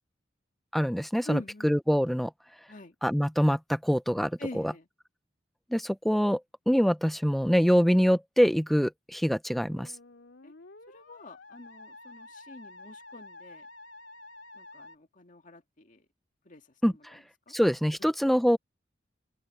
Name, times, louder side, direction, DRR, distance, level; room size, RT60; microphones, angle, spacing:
voice 1, 0.7-2.3 3.0-4.7 5.7-6.4 6.7-9.9 16.8-17.2 17.5-18.6, equal, ahead, 0.7 m, -25 dB
voice 2, 1.2-1.7 2.7-2.9 4.4-4.9 10.4-10.5 10.9-13.7 14.5-16.1 16.4-17.0 17.5-17.6 18.0-18.1, left 1 dB, 45° left, 2.0 m, -44 dB
Musical instrument, 9.7-15.0, left 2 dB, 80° left, 2.6 m, -50 dB
open air
head